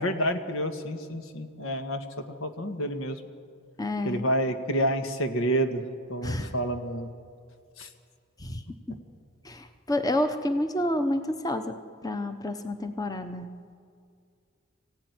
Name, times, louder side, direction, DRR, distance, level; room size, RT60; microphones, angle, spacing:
voice 1, 0.0-2.0 2.4-3.2 4.0-5.8 6.1-7.1 7.8-7.9, right 1 dB, 85° left, 7 dB, 1.8 m, -29 dB
voice 2, 3.8-4.3 6.2-6.5 8.4-8.6 9.4-13.5, left 1 dB, 20° left, 8 dB, 0.9 m, -29 dB
25.0 x 16.0 x 9.7 m, 2.3 s
head